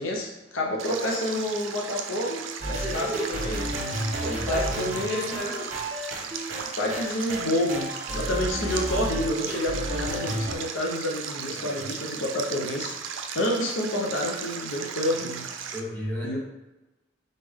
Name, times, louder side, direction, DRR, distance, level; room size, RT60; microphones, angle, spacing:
voice 1, 0.0-3.8 4.5-5.5 6.8-15.5 16.2-16.4, left 1 dB, 85° left, 0 dB, 0.7 m, -29 dB
Stream, 0.8-15.8, right 6 dB, 80° right, 0.4 m, -36 dB
sound 1, 2.6-10.5, right 1 dB, 35° right, 0.9 m, -32 dB
voice 2, 2.8-3.5 4.1-5.7 11.5-11.8 15.7-16.4, equal, 10° left, -8 dB, 1.4 m, -34 dB
3.9 x 3.5 x 3.5 m, 1.1 s
head